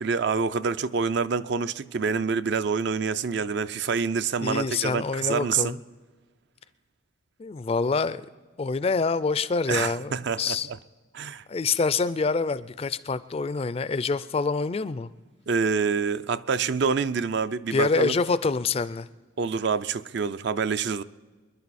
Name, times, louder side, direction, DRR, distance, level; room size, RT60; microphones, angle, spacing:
voice 1, 0.0-5.8 9.7-10.8 11.1-11.4 15.5-18.2 19.4-21.0, right 5 dB, 55° right, 0.4 m, -27 dB
voice 2, 4.4-5.8 7.4-8.3 8.6-10.7 11.5-15.1 17.7-19.1, left 4 dB, 30° left, 0.3 m, -26 dB
25.5 x 11.0 x 4.2 m
head